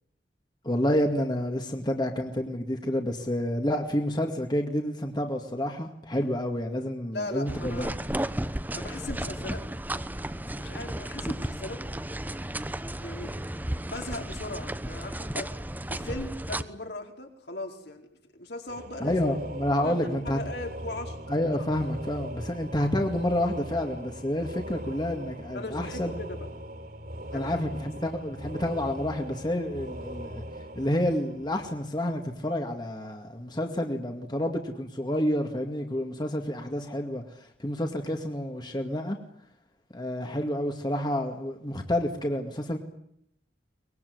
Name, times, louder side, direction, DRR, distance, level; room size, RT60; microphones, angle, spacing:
voice 1, 0.6-7.9 19.0-20.4 21.3-26.1 27.3-30.4 30.8-37.2 37.6-39.2 39.9-42.8, left 1 dB, 25° left, 3 dB, 2.2 m, -29 dB
voice 2, 7.1-8.0 8.7-9.6 10.6-11.8 13.0-13.3 13.9-15.5 15.9-18.1 18.3-19.1 19.8-21.2 25.5-26.4 27.3-27.5, left 2 dB, 65° left, 2 dB, 4.7 m, -38 dB
sound 1, 7.5-16.6, right 1 dB, 10° right, 1.0 m, -34 dB
sound 2, 18.7-32.1, right 1 dB, 60° right, 4.2 m, -40 dB
24.0 x 21.0 x 9.6 m, 0.74 s
head